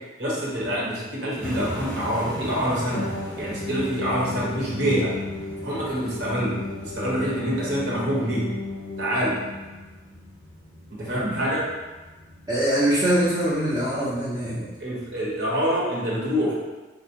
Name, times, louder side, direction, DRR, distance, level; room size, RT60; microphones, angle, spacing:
voice 1, 0.2-3.0 3.4-5.1 5.6-8.5 9.0-9.4 11.0-11.6 14.8-16.5, equal, 75° right, -6 dB, 1.1 m, -26 dB
sound 1, 1.4-15.4, equal, 10° left, 0.7 m, -41 dB
sound 2, 2.9-10.0, left 2 dB, 50° left, 0.5 m, -34 dB
voice 2, 12.5-14.7, right 1 dB, 30° right, -9 dB, 0.5 m, -23 dB
3.9 x 2.5 x 2.8 m, 1.2 s
head